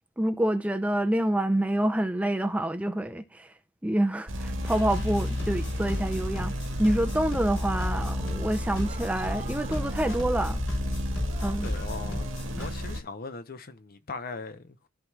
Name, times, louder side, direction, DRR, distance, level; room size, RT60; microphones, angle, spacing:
voice 1, 0.2-3.5 3.8-6.5 6.8-10.6 11.4-11.7, right 1 dB, 5° right, 0.5 m, -27 dB
sound 1, 4.3-13.0, left 1 dB, 85° right, 1.7 m, -32 dB
sound 2, 4.6-12.7, left 1 dB, 75° left, 5.2 m, -37 dB
sound 3, 7.8-10.5 11.2-11.8, right 3 dB, 30° right, 0.8 m, -46 dB
voice 2, 11.6-14.9, left 3 dB, 50° left, 0.7 m, -40 dB
14.0 x 4.7 x 2.4 m
head